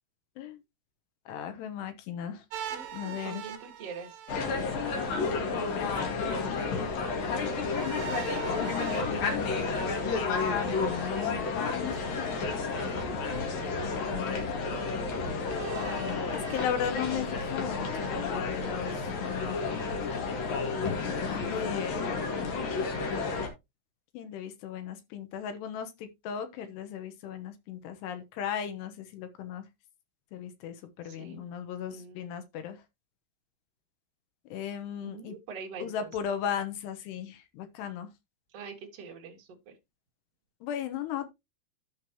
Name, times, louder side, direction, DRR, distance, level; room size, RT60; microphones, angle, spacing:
voice 1, 1.3-2.4 2.9-3.4 5.8-6.3 8.6-9.5 10.7-12.0 13.9-14.5 15.7-19.8 21.3-22.2 24.1-29.7 30.3-32.8 34.5-35.4 35.8-38.1 40.6-41.3, left 9 dB, 75° left, 2.9 m, -37 dB
sound 1, 2.5-5.2 7.6-10.6 11.9-12.9 13.6-13.7 15.4-17.3, right 9 dB, 75° right, 3.0 m, -43 dB
voice 2, 2.7-4.2 31.0-31.4 31.9-32.3 35.0-36.1 38.5-39.7, right 5 dB, 50° right, 1.9 m, -44 dB
sound 2, 4.3-23.5, left 4 dB, 55° left, 3.1 m, -31 dB
13.5 x 5.3 x 2.9 m
omnidirectional pair, 5.5 m